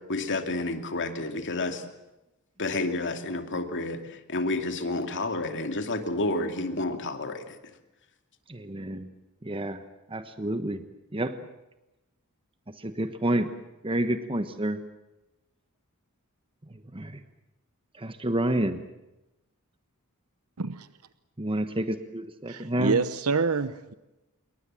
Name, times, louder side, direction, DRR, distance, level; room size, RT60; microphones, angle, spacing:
voice 1, 0.1-1.8 2.6-4.0 4.3-7.5, left 2 dB, 55° left, 6 dB, 2.6 m, -30 dB
voice 2, 8.5-9.1 9.4-9.8 10.1-10.8 11.1-11.4 12.8-13.5 13.8-14.8 16.9-17.2 18.0-18.8 21.4-23.0, right 1 dB, 25° right, 9 dB, 1.2 m, -29 dB
voice 3, 20.6-20.9 22.5-23.9, right 4 dB, 70° right, 13 dB, 0.9 m, -27 dB
28.0 x 23.0 x 7.6 m, 0.97 s
head